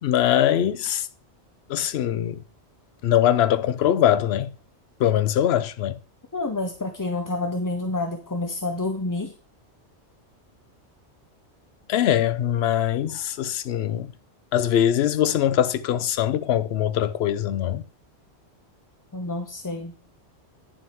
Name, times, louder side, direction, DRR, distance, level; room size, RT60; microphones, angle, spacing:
voice 1, 0.0-1.1 1.7-2.4 3.0-4.5 5.0-6.0 11.9-14.1 14.5-17.8, left 10 dB, 70° left, 0.8 m, -22 dB
voice 2, 6.3-9.3 19.1-19.9, left 2 dB, 25° left, 0.5 m, -28 dB
9.2 x 6.9 x 3.5 m
omnidirectional pair, 1.2 m